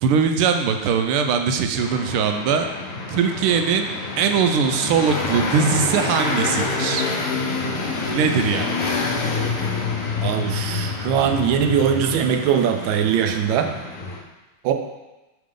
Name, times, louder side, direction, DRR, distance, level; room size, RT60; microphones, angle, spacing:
voice 1, 0.0-2.7 3.1-3.9 4.2-7.1 8.1-8.9, right 6 dB, 90° right, 6 dB, 1.5 m, -21 dB
sound 1, 1.8-14.2, left 3 dB, 60° left, 0.8 m, -27 dB
voice 2, 10.2-13.7 14.6-14.7, right 8 dB, 75° right, 5 dB, 1.2 m, -21 dB
8.4 x 3.9 x 3.7 m, 1.1 s
omnidirectional pair, 2.3 m